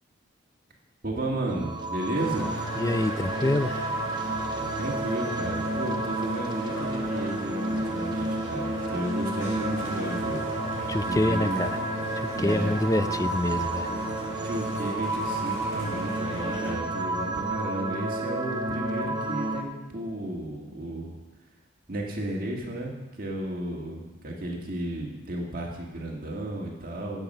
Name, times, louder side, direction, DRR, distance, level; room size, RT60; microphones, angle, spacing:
voice 1, 1.0-2.5 4.8-10.4 11.1-11.7 12.3-12.8 13.9-14.0 14.4-21.2 21.9-22.9 23.2-27.2, right 1 dB, 45° right, -1 dB, 1.9 m, -33 dB
sound 1, 1.5-19.6, right 2 dB, 20° right, 1.0 m, -31 dB
sound 2, 2.1-16.7, left 1 dB, 65° left, 3.9 m, -39 dB
voice 2, 2.8-3.7 10.9-11.7 12.4-13.9, left 1 dB, 15° left, 13 dB, 0.3 m, -26 dB
15.5 x 8.0 x 5.5 m, 1.1 s
head